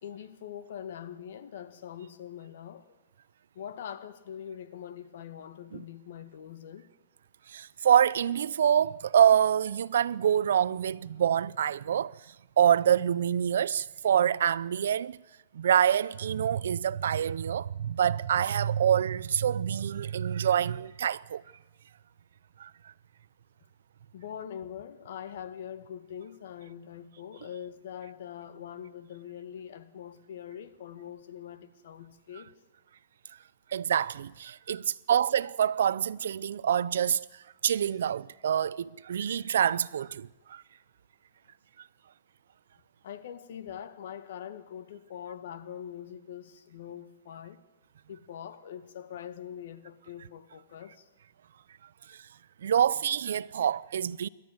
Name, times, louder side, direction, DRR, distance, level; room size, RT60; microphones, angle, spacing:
voice 1, 0.0-2.9 3.6-6.9 24.1-32.5 43.0-47.6 48.1-51.1, left 9 dB, 65° left, 1.9 m, -43 dB
voice 2, 7.5-12.1 12.6-15.2 15.5-21.4 22.6-22.7 33.7-37.3 37.6-40.6 52.1-52.2 52.6-54.3, right 9 dB, 75° right, 0.6 m, -26 dB
27.5 x 12.5 x 9.6 m
hypercardioid pair, 150°, 0 cm